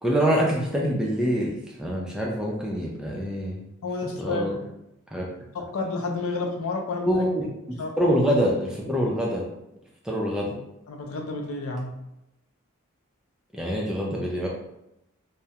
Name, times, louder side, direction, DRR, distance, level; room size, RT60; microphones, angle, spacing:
voice 1, 0.0-3.6 4.2-4.6 5.1-5.3 7.0-9.4 10.0-10.5 13.5-14.5, equal, 5° right, -3 dB, 0.3 m, -25 dB
voice 2, 3.8-4.5 5.5-7.2 7.8-8.2 10.9-11.9, left 3 dB, 75° left, 3 dB, 0.4 m, -30 dB
2.3 x 2.0 x 2.7 m, 0.84 s
head